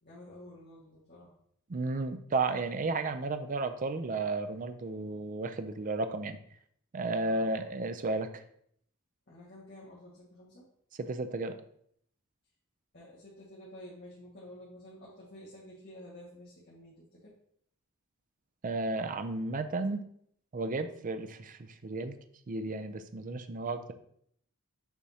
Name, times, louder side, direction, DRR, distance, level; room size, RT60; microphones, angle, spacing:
voice 1, 0.0-1.3 7.2-7.7 9.3-10.7 12.9-17.3, left 1 dB, 50° left, -8 dB, 1.7 m, -51 dB
voice 2, 1.7-6.4 6.9-8.4 11.0-11.5 18.6-20.0 20.5-22.1 22.5-23.9, right 3 dB, 40° right, 9 dB, 0.5 m, -33 dB
7.0 x 4.9 x 2.8 m, 0.66 s
head